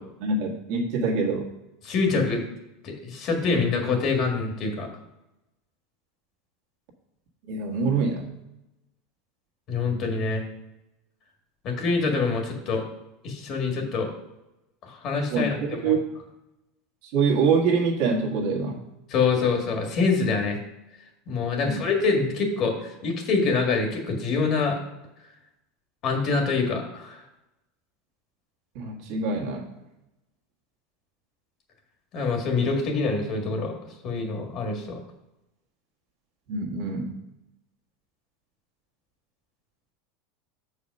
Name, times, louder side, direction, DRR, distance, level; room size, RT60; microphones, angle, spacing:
voice 1, 0.2-1.5 7.5-8.3 15.3-16.0 17.1-18.8 21.6-21.8 28.7-29.6 36.5-37.1, right 4 dB, 55° right, 0 dB, 1.6 m, -25 dB
voice 2, 1.8-2.4 2.8-4.9 9.7-10.4 11.6-12.8 13.2-14.1 14.8-16.0 19.1-20.6 21.3-24.8 26.0-27.2 32.1-33.7 34.0-35.0, left 4 dB, 35° left, 3 dB, 1.6 m, -25 dB
7.1 x 4.9 x 5.3 m, 0.92 s
supercardioid pair, 160°, 0 cm